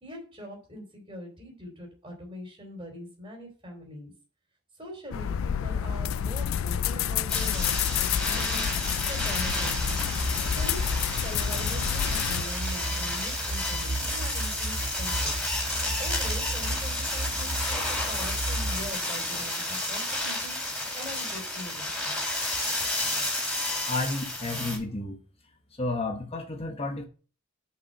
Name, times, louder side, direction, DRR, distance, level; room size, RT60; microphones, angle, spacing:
voice 1, 0.0-4.1 4.8-8.7 9.1-10.0 10.5-10.8 11.2-15.3 16.0-22.2, left 1 dB, 20° right, 0 dB, 2.8 m, -42 dB
sound 1, 5.1-12.4, left 9 dB, 70° left, 0.3 m, -29 dB
sound 2, 7.3-24.8, left 1 dB, 5° left, 4.2 m, -31 dB
sound 3, 9.3-18.9, right 1 dB, 65° right, 1.3 m, -35 dB
voice 2, 23.1-23.4 23.9-25.2 25.8-27.1, left 2 dB, 30° left, 4 dB, 1.0 m, -32 dB
6.7 x 5.4 x 6.3 m, 0.37 s
head